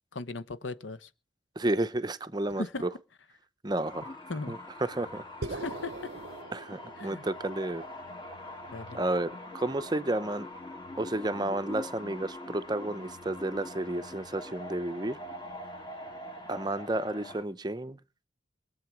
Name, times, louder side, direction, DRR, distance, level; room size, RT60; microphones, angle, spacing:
voice 1, 0.1-1.1 2.5-2.9 4.3-4.6 5.5-6.1 6.9-7.2 8.7-9.0, left 3 dB, 85° left, 1.0 m, -37 dB
voice 2, 1.6-2.6 3.6-4.1 4.5-4.6 4.9-5.2 6.5-7.8 8.9-10.5 11.0-15.2 16.5-18.0, right 1 dB, 20° right, 0.7 m, -31 dB
sound 1, 3.8-17.4, left 1 dB, 25° left, 2.5 m, -43 dB
sound 2, 5.4-9.8, right 2 dB, 55° right, 0.7 m, -43 dB
22.5 x 7.9 x 6.1 m
head